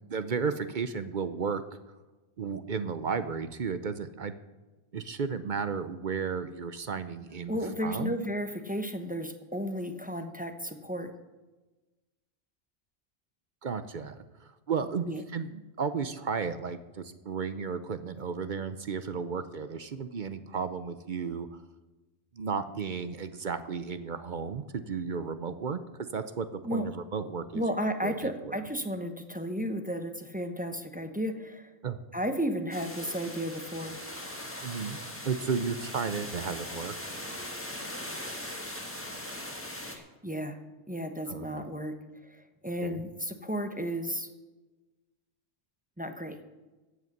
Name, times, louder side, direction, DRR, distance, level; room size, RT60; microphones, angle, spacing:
voice 1, 0.1-1.6 2.4-4.3 4.9-8.2 13.6-21.6 22.3-25.8 26.1-27.6 28.0-28.6 31.8-32.0 34.6-36.9 41.3-41.7 42.8-43.0, right 5 dB, 50° right, 11 dB, 0.7 m, -34 dB
voice 2, 7.5-11.1 15.1-15.2 26.6-26.8 27.5-31.7 32.1-33.9 39.9-40.6 40.9-42.0 42.3-44.3 46.0-46.4, equal, 10° right, 6 dB, 0.9 m, -33 dB
sound 1, 32.7-40.0, left 1 dB, 10° left, 1.6 m, -40 dB
14.5 x 8.2 x 6.6 m, 1.2 s
omnidirectional pair, 1.2 m